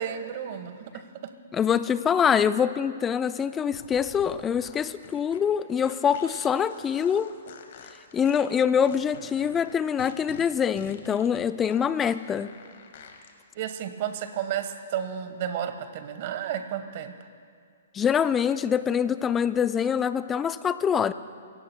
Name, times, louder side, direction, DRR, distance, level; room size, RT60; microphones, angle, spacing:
voice 1, 0.0-1.3 13.5-17.1, right 9 dB, 50° right, 9 dB, 1.2 m, -32 dB
voice 2, 1.5-7.3 8.1-12.5 17.9-21.1, left 7 dB, 20° left, 14 dB, 0.5 m, -24 dB
sound 1, 3.7-13.3, left 7 dB, 55° left, 1.7 m, -48 dB
25.0 x 16.5 x 2.2 m, 2.1 s
hypercardioid pair, 120°, 0 cm